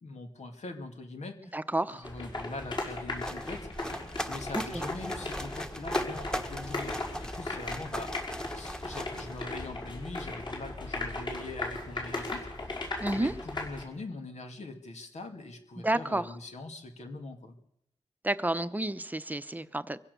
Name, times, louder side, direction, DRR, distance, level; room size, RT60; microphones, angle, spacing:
voice 1, 0.0-1.6 1.9-3.7 4.3-6.9 7.2-8.1 8.5-12.9 13.2-17.5, left 2 dB, 80° left, 5 dB, 2.6 m, -42 dB
voice 2, 1.5-2.1 4.5-4.8 13.0-13.3 15.8-16.2 18.2-20.0, right 1 dB, 15° right, 12 dB, 0.9 m, -30 dB
sound 1, 2.0-13.8, left 2 dB, 40° left, 5.9 m, -37 dB
sound 2, 2.9-9.9, equal, 5° left, 1.4 m, -39 dB
24.0 x 16.5 x 7.0 m, 0.76 s
wide cardioid pair, 110°, 12 cm